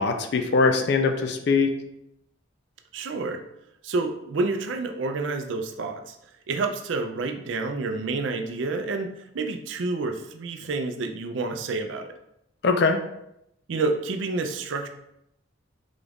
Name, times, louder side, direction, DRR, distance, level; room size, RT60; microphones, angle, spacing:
voice 1, 0.0-1.7 12.6-13.0, left 4 dB, 55° left, 6 dB, 0.4 m, -21 dB
voice 2, 2.9-3.4 3.8-6.1 6.5-12.1 13.7-14.9, right 3 dB, 70° right, 5 dB, 0.4 m, -29 dB
3.9 x 2.4 x 3.4 m, 0.79 s
head